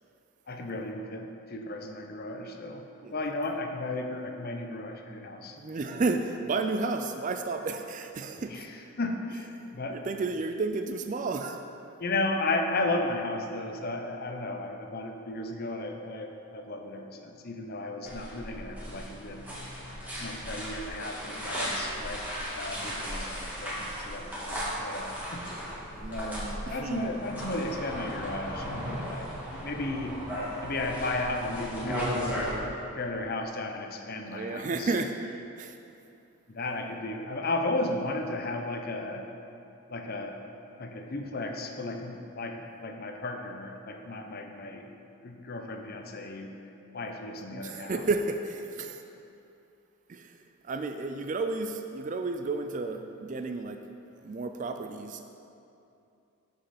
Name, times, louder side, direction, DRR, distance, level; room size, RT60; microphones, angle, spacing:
voice 1, 0.5-5.6 8.5-8.7 9.0-10.0 12.0-19.5 20.2-25.5 26.1-26.4 26.7-30.2 30.6-32.6 32.9-34.9 36.5-39.2 39.9-40.4 40.8-44.9 45.2-46.5 46.9-48.0, left 2 dB, 45° left, 4 dB, 0.7 m, -34 dB
voice 2, 5.6-8.7 9.9-11.6 21.6-21.7 25.9-27.2 34.2-35.8 47.5-49.0 50.1-53.8 54.1-55.2, right 3 dB, 35° right, 6 dB, 0.3 m, -32 dB
sound 1, 18.0-32.5, equal, 10° right, 1.7 m, -36 dB
11.5 x 5.4 x 4.2 m, 2.7 s
head